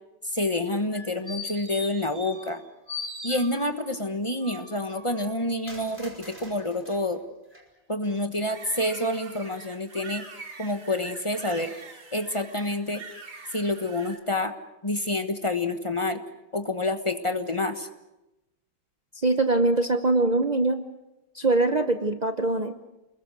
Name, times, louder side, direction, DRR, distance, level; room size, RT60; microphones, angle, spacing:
voice 1, 0.3-2.6 3.2-7.2 7.9-10.2 10.6-11.7 12.1-13.0 13.5-14.5 14.8-16.2 16.5-17.9, left 1 dB, 20° left, 7 dB, 1.1 m, -28 dB
sound 1, 0.7-2.6 2.9-3.9 4.4-7.0 7.5-7.6, left 3 dB, 5° right, 5.2 m, -41 dB
sound 2, 8.5-14.2, right 4 dB, 50° right, 3.2 m, -44 dB
voice 2, 19.1-20.8 21.3-22.8, right 2 dB, 70° right, 6 dB, 0.4 m, -23 dB
29.5 x 21.5 x 6.5 m, 0.97 s
omnidirectional pair, 2.2 m